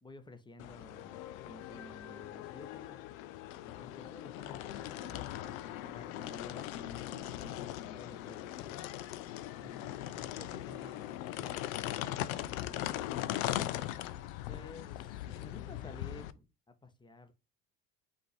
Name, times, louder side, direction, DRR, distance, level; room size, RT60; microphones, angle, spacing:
voice 1, 0.0-1.2 1.4-3.1 3.6-8.8 14.5-16.5 16.8-17.3, left 2 dB, 10° left, 0.8 m, -52 dB
sound 1, 0.6-16.3, left 13 dB, 80° left, 0.5 m, -40 dB
voice 2, 9.6-12.9, right 3 dB, 10° right, 0.4 m, -56 dB
5.8 x 2.7 x 3.2 m
hypercardioid pair, 65°, 41 cm